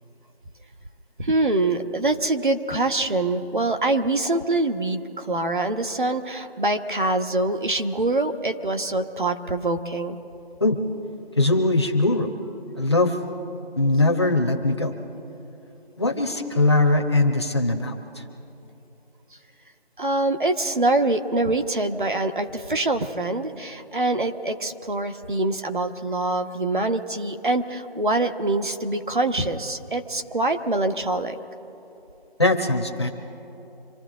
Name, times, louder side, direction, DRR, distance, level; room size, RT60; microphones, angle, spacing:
voice 1, 1.2-10.2 20.0-31.4, right 2 dB, 55° right, 5 dB, 1.3 m, -24 dB
voice 2, 11.4-12.3 12.8-13.2 13.8-15.0 16.0-18.2 32.4-33.1, left 2 dB, 25° left, 3 dB, 1.1 m, -21 dB
26.5 x 14.0 x 3.8 m, 3.0 s
figure-of-eight pair, 175°, 30 cm